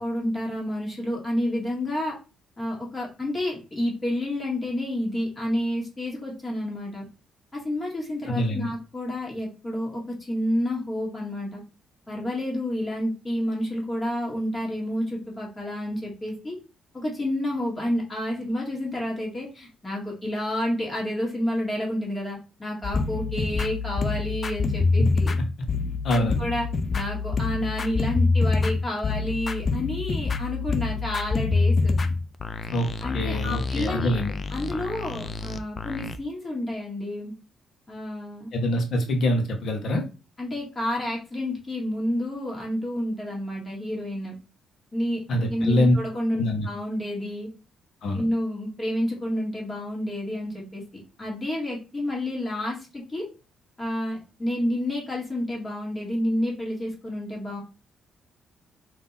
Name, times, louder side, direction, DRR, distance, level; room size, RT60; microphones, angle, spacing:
voice 1, 0.0-2.1 2.6-7.1 7.5-10.0 10.3-11.6 12.1-16.6 16.9-25.4 26.1-26.7 26.9-31.9 33.0-34.2 34.5-37.3 37.9-38.5 40.4-44.4 44.9-47.5 48.1-50.8 51.2-53.2 53.8-57.6, left 1 dB, 25° left, -3 dB, 1.8 m, -29 dB
voice 2, 8.3-8.7 26.0-26.4 32.7-32.9 33.1-34.3 38.5-40.0 45.3-46.0 46.4-46.7 48.0-48.2, left 1 dB, 65° left, 3 dB, 1.1 m, -24 dB
sound 1, 22.8-36.2, left 4 dB, 40° left, 0.4 m, -26 dB
3.7 x 2.8 x 4.0 m, 0.32 s
cardioid pair, 90°, 0 cm